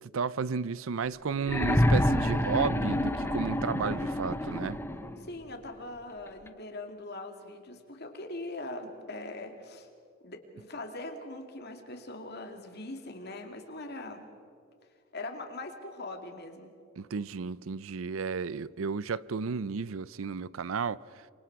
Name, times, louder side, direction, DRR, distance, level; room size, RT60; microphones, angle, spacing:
voice 1, 0.0-4.8 17.0-21.0, right 5 dB, 70° right, 0.5 m, -33 dB
sound 1, 1.4-5.2 6.5-6.6, left 1 dB, 10° left, 0.7 m, -27 dB
voice 2, 5.2-9.9 10.2-14.3 15.1-16.7, left 2 dB, 50° left, 2.5 m, -41 dB
27.5 x 24.5 x 4.8 m
head